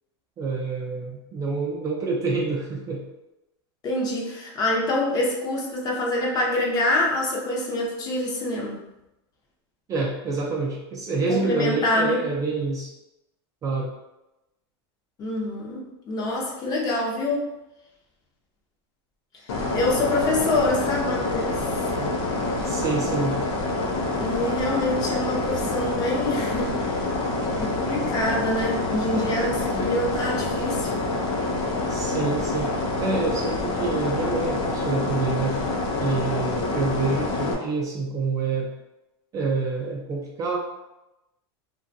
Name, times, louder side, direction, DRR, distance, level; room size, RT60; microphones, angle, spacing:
voice 1, 0.4-3.1 9.9-12.9 13.6-13.9 22.0-22.2 22.6-23.4 25.6-25.8 29.1-29.3 29.7-29.9 31.9-35.6 36.0-38.7 39.3-40.6, right 3 dB, 25° right, -2 dB, 0.4 m, -27 dB
voice 2, 3.8-8.8 11.3-12.3 15.2-17.5 19.5-21.6 24.2-27.0 27.5-30.9, left 1 dB, 30° left, -2 dB, 0.6 m, -26 dB
sound 1, 19.5-37.5, left 2 dB, 85° left, 0.6 m, -27 dB
2.4 x 2.2 x 2.6 m, 0.95 s
supercardioid pair, 135°, 14 cm